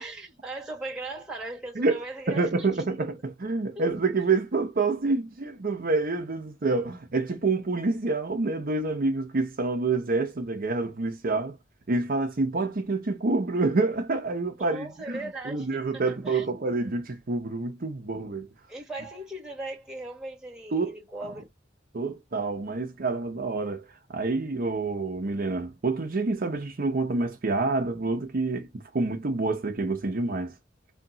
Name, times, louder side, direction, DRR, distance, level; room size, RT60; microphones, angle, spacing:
voice 1, 0.0-3.1 3.7-4.0 14.6-16.5 18.7-21.5, right 2 dB, 5° right, 1.4 m, -39 dB
voice 2, 2.3-11.5 11.9-18.5 20.7-20.9 21.2-21.3 21.9-23.8 24.1-30.5, right 3 dB, 50° right, 0.6 m, -27 dB
3.6 x 2.7 x 3.9 m
head